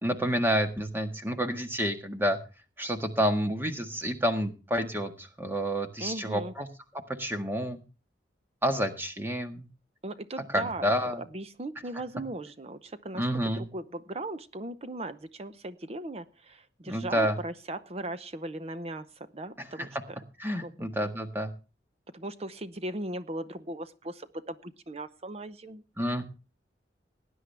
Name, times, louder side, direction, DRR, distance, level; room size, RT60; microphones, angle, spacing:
voice 1, 0.0-2.4 2.8-6.7 7.2-7.8 8.6-9.7 10.5-11.2 13.1-13.6 16.9-17.4 19.6-19.7 20.4-21.5 26.0-26.2, equal, 10° right, 6 dB, 1.6 m, -29 dB
voice 2, 6.0-6.5 10.0-10.9 11.3-13.2 13.6-20.2 20.6-20.7 22.1-25.8, right 1 dB, 35° right, 12 dB, 0.7 m, -38 dB
18.5 x 10.0 x 3.4 m, 0.32 s
head